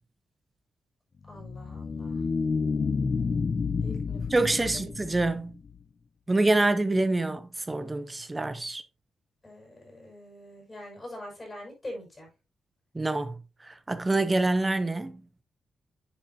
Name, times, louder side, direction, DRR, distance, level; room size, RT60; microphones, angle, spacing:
sound 1, 1.2-5.8, left 5 dB, 35° left, 0.5 m, -30 dB
voice 1, 1.3-2.2 3.8-4.9 9.4-12.3, left 1 dB, 20° left, 6.4 m, -44 dB
voice 2, 4.3-5.6 6.3-8.8 12.9-13.4 13.6-15.2, right 2 dB, 15° right, 0.8 m, -26 dB
10.5 x 7.6 x 2.8 m
wide cardioid pair, 145°, 0 cm